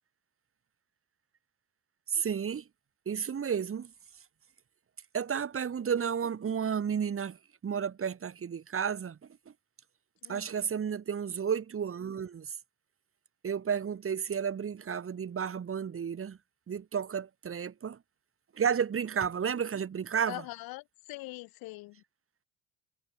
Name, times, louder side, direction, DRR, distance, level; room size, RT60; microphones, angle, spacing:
voice 1, 2.1-2.6 3.1-3.9 5.1-7.4 7.6-9.2 10.3-12.6 13.4-16.4 16.7-18.0 18.5-20.4, right 7 dB, 35° right, 3.1 m, -32 dB
voice 2, 20.3-22.0, left 21 dB, 60° left, 2.1 m, -43 dB
hypercardioid pair, 70°, 40 cm